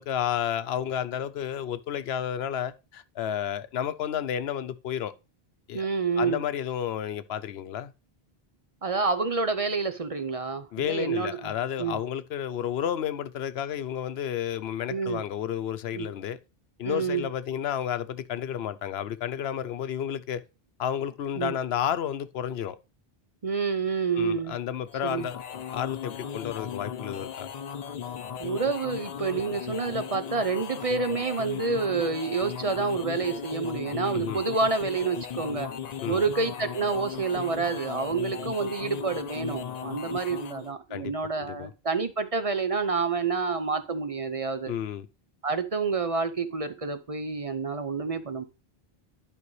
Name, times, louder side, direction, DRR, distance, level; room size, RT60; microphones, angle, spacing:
voice 1, 0.0-5.1 5.7-5.8 6.2-7.9 10.7-16.4 16.8-20.4 20.8-22.8 24.1-25.4 25.7-27.5 34.1-34.4 36.0-36.2 40.9-41.1 41.4-41.7 44.7-45.1, left 9 dB, 85° left, 0.9 m, -31 dB
voice 2, 5.7-6.4 8.8-11.5 11.8-12.0 14.9-15.2 16.0-16.1 16.8-17.3 21.4-21.5 23.4-24.6 25.0-25.3 28.4-35.7 36.1-44.7 45.4-48.4, right 4 dB, 40° right, 0.7 m, -28 dB
sound 1, 24.9-40.7, left 8 dB, 50° left, 0.6 m, -37 dB
11.0 x 5.3 x 3.2 m
omnidirectional pair, 1.0 m